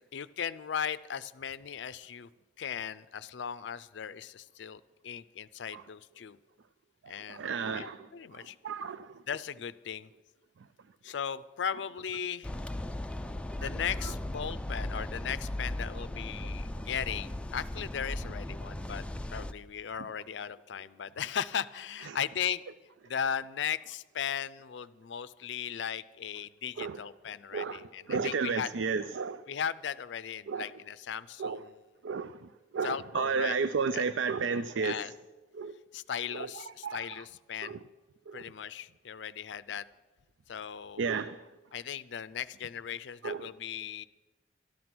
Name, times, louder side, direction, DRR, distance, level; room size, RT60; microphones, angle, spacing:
voice 1, 0.0-2.3 2.6-6.4 7.1-8.6 9.3-10.1 11.0-12.5 13.6-19.0 19.3-22.6 23.0-28.7 29.5-31.7 32.8-33.6 33.9-34.1 34.8-35.1 35.9-37.8 38.3-39.9 40.5-41.2 41.7-44.0, left 8 dB, 70° left, 15 dB, 0.4 m, -37 dB
voice 2, 7.0-9.2 13.6-13.7 22.1-22.2 26.8-27.0 27.5-29.4 30.5-30.7 31.4-31.6 32.0-35.1 35.5-35.7 36.3-37.2 37.6-37.8 38.3-38.4 41.0-41.4 43.2-43.5, right 5 dB, 90° right, 13 dB, 0.4 m, -33 dB
sound 1, 12.4-19.5, left 1 dB, 5° left, 0.4 m, -37 dB
13.0 x 11.0 x 6.0 m, 1.2 s
head